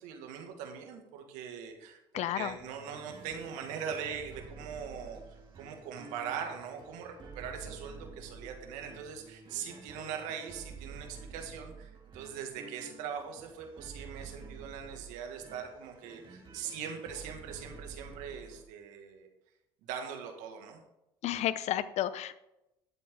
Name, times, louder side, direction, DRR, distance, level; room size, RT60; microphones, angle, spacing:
voice 1, 0.0-5.2 5.6-19.3 19.8-20.8, right 7 dB, 75° right, 4 dB, 2.1 m, -41 dB
voice 2, 2.1-2.5 21.2-22.4, left 12 dB, 60° left, 14 dB, 0.8 m, -31 dB
sound 1, 2.4-18.6, right 4 dB, 40° right, 2.7 m, -50 dB
11.5 x 8.4 x 3.8 m, 0.88 s
supercardioid pair, 75°, 13 cm